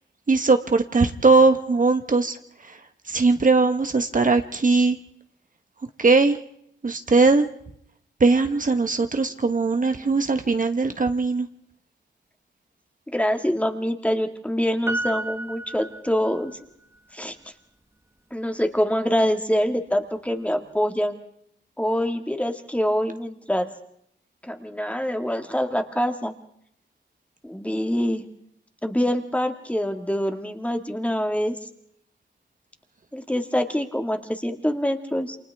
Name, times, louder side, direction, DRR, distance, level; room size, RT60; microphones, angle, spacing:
voice 1, 0.3-2.4 2.6-2.8 3.1-5.0 6.0-6.4 6.8-7.5 8.2-11.5, right 3 dB, 40° right, 7 dB, 1.1 m, -20 dB
voice 2, 13.1-16.5 17.1-17.4 18.3-21.2 21.8-23.7 24.4-26.3 27.4-28.2 28.8-31.5 33.1-35.4, equal, 5° left, 5 dB, 1.9 m, -25 dB
Piano, 14.9-16.7 17.0-17.1, right 2 dB, 15° right, 1.4 m, -31 dB
28.5 x 27.5 x 3.5 m, 0.73 s
wide cardioid pair, 110°, 20 cm